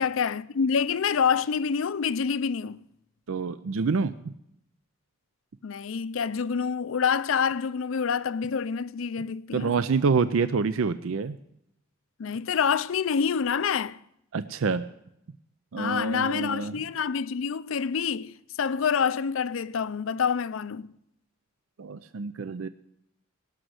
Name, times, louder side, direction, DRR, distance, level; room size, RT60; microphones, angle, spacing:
voice 1, 0.0-2.8 5.6-9.7 12.2-14.0 15.8-20.9, left 6 dB, 70° left, 0.5 m, -27 dB
voice 2, 3.3-4.3 9.5-11.4 14.3-14.8 15.7-16.8 21.8-22.7, right 5 dB, 70° right, 0.5 m, -27 dB
19.0 x 6.3 x 7.8 m
head